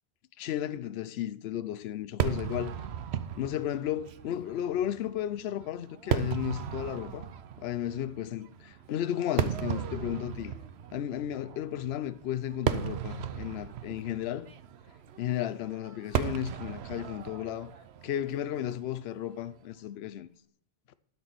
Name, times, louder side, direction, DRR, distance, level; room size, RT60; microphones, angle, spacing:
voice 1, 0.4-2.8 3.4-7.3 7.6-10.5 10.9-14.5 15.2-17.7 18.0-20.3, left 11 dB, 80° left, 0.8 m, -34 dB
Fireworks, 2.2-19.5, right 9 dB, 90° right, 0.9 m, -36 dB
12.0 x 4.6 x 7.6 m
omnidirectional pair, 1.1 m